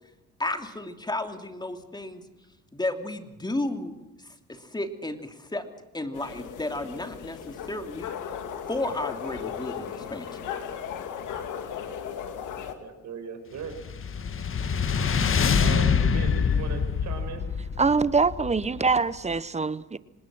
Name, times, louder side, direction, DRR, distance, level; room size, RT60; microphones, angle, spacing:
voice 1, 0.4-2.2 2.7-3.9 4.2-5.6 5.9-8.1 8.7-10.4, left 2 dB, 15° left, 2.7 m, -33 dB
sound 1, 6.1-12.7, left 8 dB, 85° left, 2.4 m, -36 dB
voice 2, 12.8-13.8 15.6-17.5, right 6 dB, 65° right, 5.4 m, -38 dB
sound 2, 13.6-19.1, left 6 dB, 45° left, 1.6 m, -25 dB
voice 3, 17.8-20.0, right 4 dB, 20° right, 0.9 m, -24 dB
26.0 x 20.0 x 6.3 m
cardioid pair, 90°, 30 cm